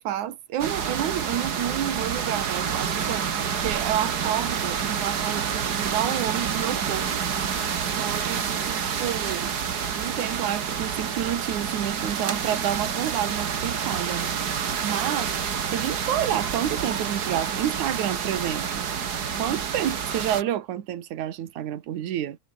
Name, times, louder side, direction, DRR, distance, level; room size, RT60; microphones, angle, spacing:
voice 1, 0.0-3.3 3.6-7.3 8.0-9.5 9.9-14.3 14.8-15.3 15.7-18.9 19.4-22.4, right 11 dB, 65° right, 3.0 m, -29 dB
sound 1, 0.6-20.4, right 7 dB, 45° right, 1.3 m, -28 dB
omnidirectional pair, 3.8 m